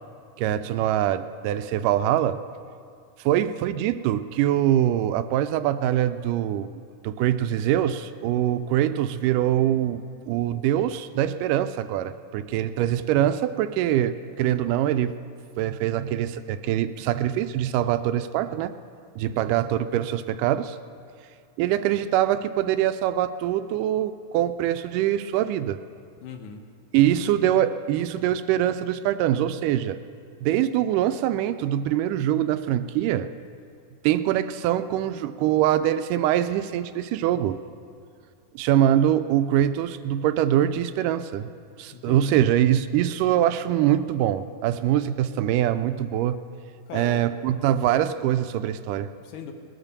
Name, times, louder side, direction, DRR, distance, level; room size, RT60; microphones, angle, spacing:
voice 1, 0.4-2.4 3.2-6.7 7.0-10.0 10.3-15.1 15.6-18.7 19.2-20.8 21.6-25.8 26.9-30.0 30.4-33.3 34.0-37.6 38.6-41.5 41.8-46.4 46.9-49.1, right 11 dB, 80° right, 11 dB, 2.0 m, -23 dB
voice 2, 26.2-26.7 27.0-27.5 41.9-42.4 46.9-47.3 49.2-49.5, left 7 dB, 75° left, 5 dB, 2.4 m, -40 dB
20.0 x 8.9 x 6.7 m, 2.3 s
omnidirectional pair, 4.0 m